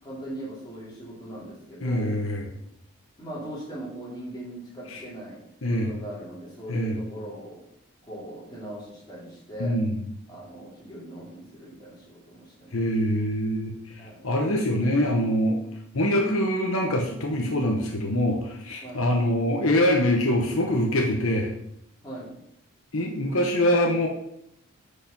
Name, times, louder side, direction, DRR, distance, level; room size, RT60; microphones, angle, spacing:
voice 1, 0.0-2.2 3.2-7.6 8.1-9.8 10.3-12.8 14.0-14.3 18.8-19.1 22.0-22.4, right 1 dB, 20° left, -7 dB, 3.6 m, -40 dB
voice 2, 1.8-2.5 4.9-5.0 5.6-5.9 6.7-7.0 9.6-9.9 12.7-15.6 15.9-21.5 22.9-24.1, left 1 dB, 70° left, 1 dB, 1.2 m, -24 dB
8.9 x 5.3 x 5.4 m, 0.76 s
head